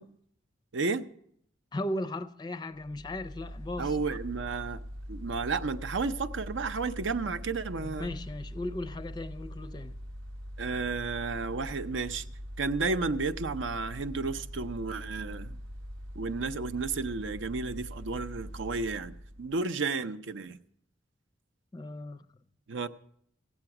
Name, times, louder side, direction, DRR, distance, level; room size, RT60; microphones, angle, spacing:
voice 1, 0.7-1.1 3.8-4.8 5.1-8.1 10.6-12.2 12.6-15.6 16.1-20.6 22.7-22.9, right 4 dB, 75° right, 0.6 m, -32 dB
voice 2, 1.7-4.2 7.8-10.0 21.7-22.2, left 1 dB, 20° left, 0.4 m, -37 dB
Mechanical fan, 2.8-19.6, equal, 90° right, 0.9 m, -42 dB
15.5 x 8.7 x 5.8 m
head